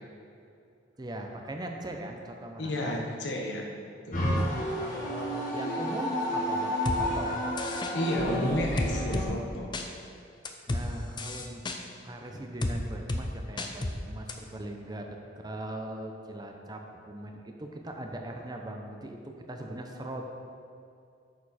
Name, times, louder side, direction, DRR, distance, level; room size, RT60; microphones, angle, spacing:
voice 1, 1.0-2.9 4.8-7.5 10.7-11.6 12.0-20.3, right 1 dB, 20° right, 3 dB, 0.7 m, -40 dB
voice 2, 2.6-3.7 4.1-4.3 7.9-9.8, left 1 dB, 70° left, 1 dB, 1.2 m, -32 dB
sound 1, 4.1-9.2, equal, 45° left, 1.6 m, -30 dB
sound 2, 6.9-7.0 7.6-7.9 8.8-9.3 9.7-9.9 10.5-10.8 11.2-11.8 12.6-12.8 13.1-13.2 13.6-14.0 14.3-14.4, left 2 dB, 25° left, 0.5 m, -31 dB
9.4 x 6.8 x 4.3 m, 2.5 s
head